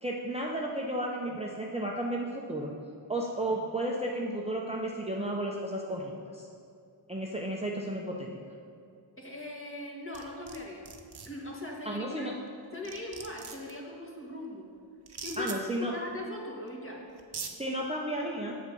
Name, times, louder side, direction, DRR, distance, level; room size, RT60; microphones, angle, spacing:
voice 1, 0.0-2.7 3.1-6.5 7.1-8.3 11.9-12.3 15.4-15.9 17.6-18.6, right 1 dB, 15° right, -2 dB, 0.7 m, -33 dB
voice 2, 9.2-10.9 11.2-12.3 12.7-14.7 15.2-17.0, left 1 dB, 25° left, -2 dB, 1.8 m, -40 dB
sound 1, 10.1-10.6 10.8-11.3 12.5-12.6 12.8-13.7 15.1-15.6 16.7-16.8 17.2-17.5, right 5 dB, 55° right, 0.9 m, -40 dB
7.8 x 7.2 x 5.4 m, 2.6 s
wide cardioid pair, 95°, 48 cm